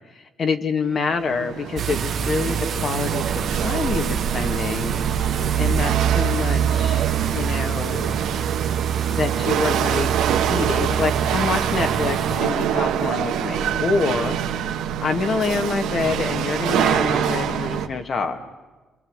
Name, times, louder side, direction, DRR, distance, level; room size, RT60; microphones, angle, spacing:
voice 1, 0.4-5.0 5.6-7.1 7.3-8.2 9.1-14.7 15.0-18.4, left 4 dB, 50° left, 6 dB, 2.4 m, -26 dB
Chatter / Hiss / Rattle, 1.0-17.9, right 9 dB, 90° right, 1.6 m, -25 dB
sound 1, 1.8-12.4, right 8 dB, 60° right, 1.5 m, -25 dB
29.0 x 23.5 x 8.3 m, 1.2 s
cardioid pair, 90°, 0 cm